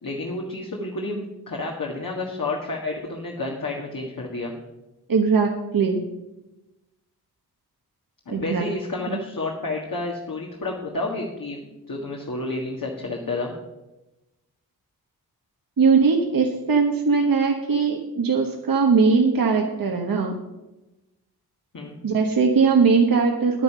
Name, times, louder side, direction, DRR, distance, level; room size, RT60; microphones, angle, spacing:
voice 1, 0.0-4.5 8.3-11.6 11.9-13.5 21.7-22.0, left 2 dB, 55° left, -1 dB, 1.8 m, -30 dB
voice 2, 5.1-6.0 8.3-8.6 9.1-9.2 15.8-20.3 22.0-23.6, right 5 dB, 60° right, 2 dB, 1.3 m, -20 dB
9.8 x 9.7 x 5.6 m, 1.0 s
cardioid pair, 60°, 39 cm